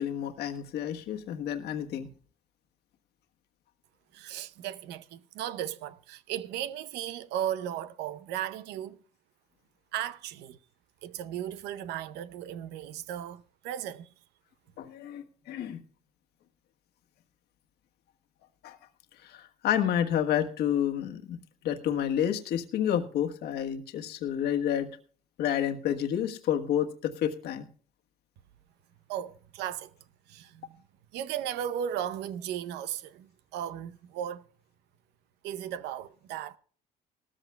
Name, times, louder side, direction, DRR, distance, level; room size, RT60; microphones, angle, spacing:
voice 1, 0.0-2.1 14.8-15.8 18.6-18.8 19.2-21.4 21.6-24.9 25.4-27.7, left 10 dB, 75° left, 1.4 m, -29 dB
voice 2, 4.1-9.0 9.9-10.6 11.0-14.1 29.1-29.9 30.3-30.8 31.1-34.4 35.4-36.6, right 10 dB, 90° right, 0.7 m, -36 dB
18.5 x 14.0 x 2.3 m
cardioid pair, 110°, 17 cm